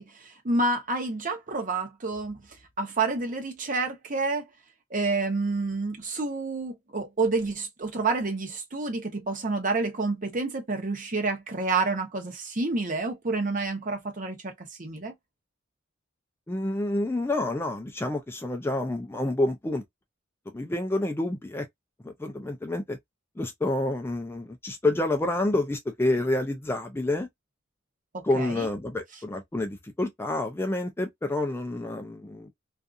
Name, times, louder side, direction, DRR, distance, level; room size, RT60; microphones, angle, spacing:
voice 1, 0.0-2.4 2.8-4.4 4.9-14.5 14.8-15.1 28.1-28.7, right 3 dB, 40° right, 0.8 m, -29 dB
voice 2, 16.5-19.8 20.5-21.6 22.0-23.0 23.4-27.3 28.2-32.5, left 2 dB, 10° left, 0.3 m, -28 dB
2.6 x 2.4 x 2.3 m
head